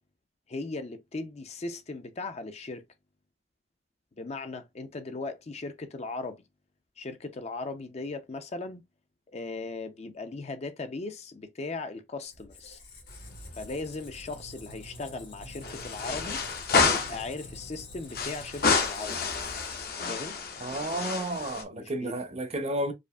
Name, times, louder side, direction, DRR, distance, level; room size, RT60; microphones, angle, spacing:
voice 1, 0.5-2.8 4.2-6.4 7.0-8.8 9.3-12.8 13.6-16.4 16.9-19.2 20.1-20.4 21.7-22.2, left 3 dB, 40° left, 0.5 m, -38 dB
Squeak, 12.3-20.2, left 1 dB, 80° left, 1.7 m, -46 dB
sound 1, 13.1-13.8 14.1-14.2 15.6-17.3 18.1-21.6, left 4 dB, 60° left, 0.8 m, -29 dB
voice 2, 20.6-22.9, right 1 dB, 35° right, 0.6 m, -32 dB
4.9 x 2.5 x 2.2 m
head